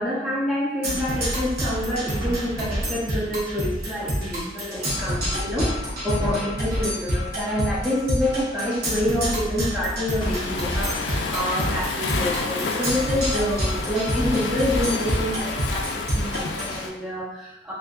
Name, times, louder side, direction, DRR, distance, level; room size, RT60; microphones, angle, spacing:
voice 1, 0.0-17.7, left 1 dB, 5° right, -7 dB, 0.5 m, -27 dB
Percussion, 0.8-16.8, equal, 60° right, 0.8 m, -28 dB
Waves surf, 10.2-16.9, left 4 dB, 85° left, 0.3 m, -30 dB
2.6 x 2.4 x 2.3 m, 0.93 s
head